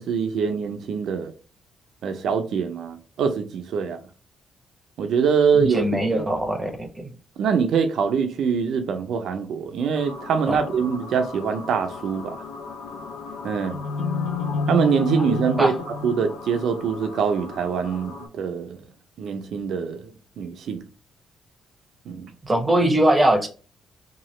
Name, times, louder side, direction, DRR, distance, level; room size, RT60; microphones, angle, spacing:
voice 1, 0.0-1.3 2.0-4.0 5.0-5.8 6.1-6.2 7.4-12.4 13.4-13.8 14.7-15.7 16.0-18.8 19.2-20.1 20.4-20.8 22.1-22.3, right 6 dB, 70° right, 0.5 m, -24 dB
voice 2, 5.5-7.1 10.5-10.6 15.6-15.7 22.4-23.5, right 1 dB, 20° right, 0.7 m, -21 dB
sound 1, 9.9-18.3, left 4 dB, 90° left, 0.5 m, -31 dB
2.9 x 2.3 x 3.0 m
cardioid pair, 90°, 0 cm